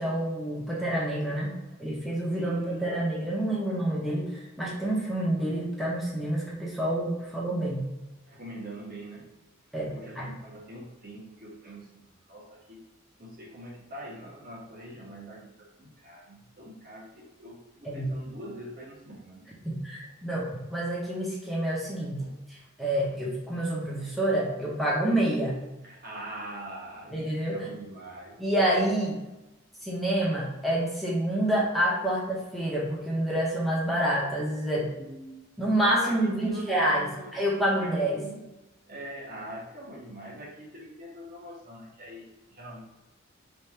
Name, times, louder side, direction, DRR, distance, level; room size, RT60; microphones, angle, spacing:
voice 1, 0.0-1.5 1.8-7.9 9.7-10.3 17.8-18.1 19.6-22.3 22.8-25.6 27.1-27.6 28.4-29.2 29.8-34.9 35.6-38.2, right 1 dB, ahead, -5 dB, 0.6 m, -28 dB
voice 2, 2.3-2.9 8.3-9.3 9.9-12.0 12.3-12.8 13.2-19.5 20.0-20.1 22.2-22.3 23.2-23.3 25.8-28.4 35.0-35.4 36.0-37.3 37.8-38.5 38.9-42.8, right 1 dB, 45° right, -4 dB, 1.2 m, -43 dB
3.4 x 2.4 x 4.2 m, 1.0 s
head